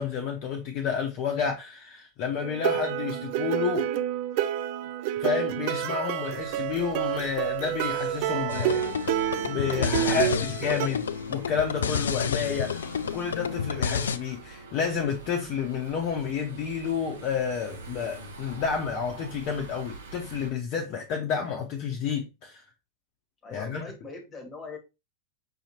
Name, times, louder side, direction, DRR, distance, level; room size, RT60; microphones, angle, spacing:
voice 1, 0.0-3.9 5.2-8.8 9.5-11.0 11.3-22.6 23.5-23.9, left 6 dB, 40° left, 0.7 m, -30 dB
sound 1, 2.4-10.9, right 12 dB, 45° right, 0.3 m, -29 dB
sound 2, 6.3-20.5, right 2 dB, 70° right, 0.9 m, -45 dB
voice 2, 8.2-8.8 9.9-11.0 23.4-24.8, left 3 dB, 25° left, 1.2 m, -40 dB
sound 3, 8.5-14.2, left 7 dB, 65° left, 0.3 m, -30 dB
5.5 x 2.8 x 2.9 m
figure-of-eight pair, 90°, 0 cm